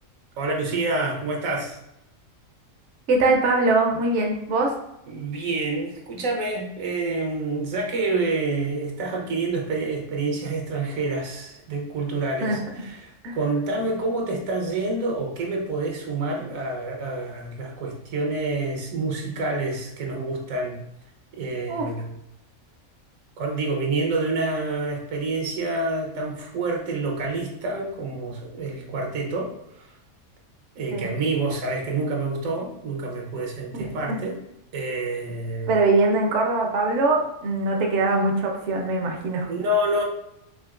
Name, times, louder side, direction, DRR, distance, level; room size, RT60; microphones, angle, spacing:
voice 1, 0.4-1.8 5.1-20.8 21.3-22.2 23.4-29.9 30.8-34.4 34.7-35.8 39.4-40.0, right 2 dB, 80° right, 0 dB, 1.2 m, -28 dB
voice 2, 3.1-4.7 12.4-12.6 13.2-13.4 21.7-21.9 30.9-31.1 33.7-34.2 35.7-39.5, right 2 dB, 65° right, 1 dB, 0.9 m, -22 dB
5.0 x 2.8 x 2.4 m, 0.84 s
omnidirectional pair, 1.4 m